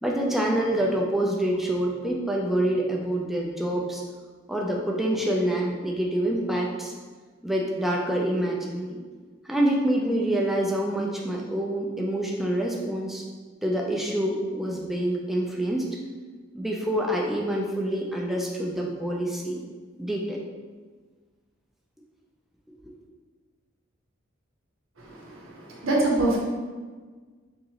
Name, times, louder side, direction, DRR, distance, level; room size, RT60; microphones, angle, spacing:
voice 1, 0.0-4.0 4.5-6.9 7.4-9.0 9.4-13.2 13.6-15.8 16.5-19.6 20.0-20.4, right 1 dB, ahead, -2 dB, 0.4 m, -26 dB
voice 2, 25.0-26.4, right 2 dB, 85° right, -3 dB, 0.8 m, -25 dB
3.6 x 2.9 x 2.8 m, 1.4 s
head